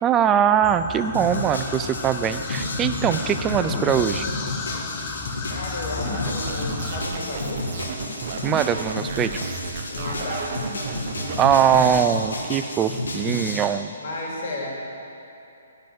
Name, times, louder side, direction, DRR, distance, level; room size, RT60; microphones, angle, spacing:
voice 1, 0.0-4.3 8.4-9.5 11.4-13.9, right 8 dB, 15° right, 10 dB, 0.4 m, -21 dB
sound 1, 0.6-7.0, left 5 dB, 20° left, 0.7 m, -34 dB
sound 2, 1.1-13.6, left 2 dB, 90° left, 2.0 m, -31 dB
voice 2, 5.5-7.7 9.9-11.6 14.0-14.7, left 2 dB, 50° left, -3 dB, 2.9 m, -33 dB
sound 3, 6.0-12.0, right 5 dB, 45° right, 1.1 m, -33 dB
12.5 x 5.4 x 7.5 m, 2.8 s
hypercardioid pair, 160°, 0 cm